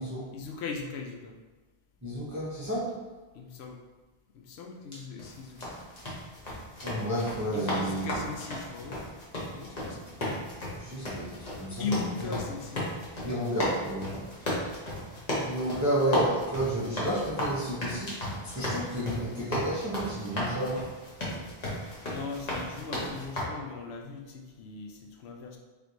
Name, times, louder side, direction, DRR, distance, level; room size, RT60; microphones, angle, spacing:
voice 1, 0.3-1.4 3.3-3.8 4.3-5.8 7.5-9.0 9.5-10.1 11.8-12.9 21.8-25.6, left 4 dB, 80° left, 2 dB, 0.8 m, -38 dB
voice 2, 2.0-2.9 6.8-8.2 10.7-11.9 12.2-12.3 13.2-14.3 15.4-20.8, right 1 dB, 20° right, -7 dB, 0.7 m, -31 dB
sound 1, 5.2-23.4, left 1 dB, 40° left, 1.1 m, -35 dB
3.2 x 3.2 x 3.9 m, 1.3 s
omnidirectional pair, 1.1 m